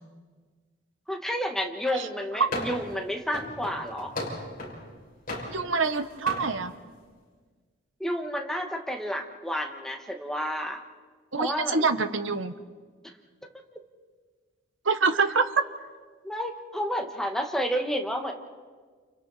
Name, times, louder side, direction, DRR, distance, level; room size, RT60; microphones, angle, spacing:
voice 1, 1.1-4.1 8.0-10.8 11.4-11.9 16.2-18.3, equal, ahead, 2 dB, 1.5 m, -30 dB
sound 1, 2.5-2.9 3.3-4.8 5.3-6.0 6.3-6.5, left 1 dB, 45° left, 6.3 m, -35 dB
voice 2, 5.5-6.7 11.3-12.5 14.8-15.6, right 4 dB, 75° right, 9 dB, 1.2 m, -25 dB
30.0 x 29.5 x 4.2 m, 1.5 s
head